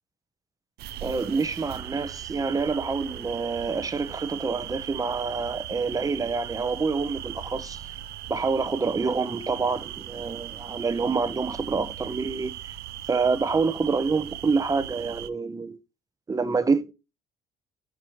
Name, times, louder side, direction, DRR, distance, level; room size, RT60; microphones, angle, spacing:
sound 1, 0.8-15.3, right 12 dB, 70° right, 0.5 m, -39 dB
voice 1, 1.0-7.8 8.3-12.7 13.1-15.8 16.3-16.9, right 4 dB, 20° right, 0.8 m, -27 dB
6.0 x 5.0 x 4.5 m
cardioid pair, 110°, 17 cm